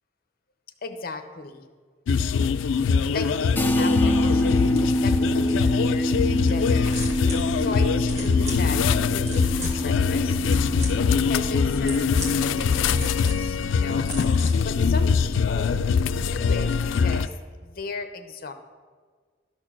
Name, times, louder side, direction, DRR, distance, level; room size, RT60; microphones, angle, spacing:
voice 1, 0.8-1.7 2.8-6.1 6.4-6.9 7.6-10.4 11.3-14.1 14.6-15.8 16.1-17.3 17.6-18.5, left 3 dB, 50° left, 8 dB, 0.7 m, -36 dB
sound 1, 2.1-17.3, left 6 dB, 90° left, 0.3 m, -23 dB
sound 2, 3.5-13.2, equal, 10° left, 0.5 m, -26 dB
sound 3, 6.7-17.1, equal, 35° right, 1.9 m, -36 dB
12.0 x 4.4 x 6.0 m, 1.6 s
head